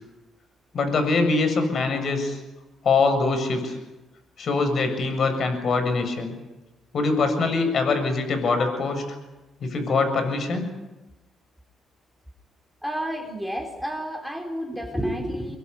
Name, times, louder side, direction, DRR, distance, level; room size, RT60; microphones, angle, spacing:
voice 1, 0.7-2.4 2.8-3.8 4.4-6.3 6.9-9.0 9.6-10.7, left 3 dB, 55° left, 7 dB, 7.3 m, -23 dB
voice 2, 12.8-15.6, equal, 5° left, 3 dB, 3.9 m, -30 dB
25.0 x 22.5 x 9.7 m, 1.0 s
cardioid pair, 90°, 0 cm